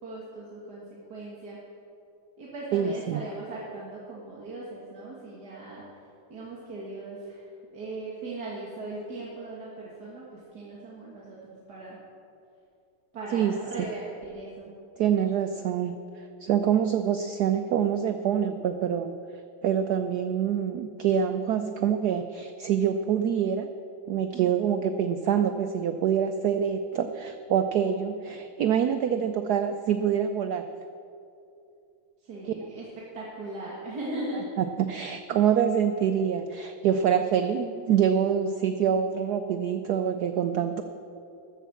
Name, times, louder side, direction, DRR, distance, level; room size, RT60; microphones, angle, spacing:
voice 1, 0.0-1.6 2.4-5.8 6.3-7.5 7.7-12.0 13.1-14.7 24.3-24.7 29.1-29.3 32.2-34.6, right 2 dB, 50° right, -6 dB, 2.1 m, -39 dB
voice 2, 2.7-3.2 13.3-13.5 15.0-19.2 19.6-23.7 24.1-30.7 34.6-40.8, right 8 dB, 90° right, 8 dB, 0.8 m, -26 dB
13.5 x 8.3 x 7.1 m, 2.6 s
omnidirectional pair, 2.3 m